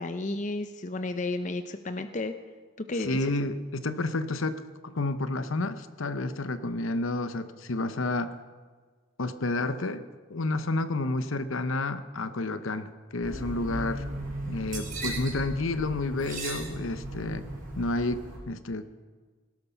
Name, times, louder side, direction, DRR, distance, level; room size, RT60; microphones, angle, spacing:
voice 1, 0.0-2.3 2.9-3.3, left 2 dB, 35° left, 8 dB, 0.6 m, -32 dB
voice 2, 3.0-8.3 9.2-10.0 10.3-14.0 14.4-17.5 17.8-19.1, left 2 dB, 70° left, 12 dB, 0.8 m, -30 dB
sound 1, 13.2-18.4, right 1 dB, 40° right, 4.9 m, -36 dB
18.0 x 12.5 x 5.7 m, 1.5 s
head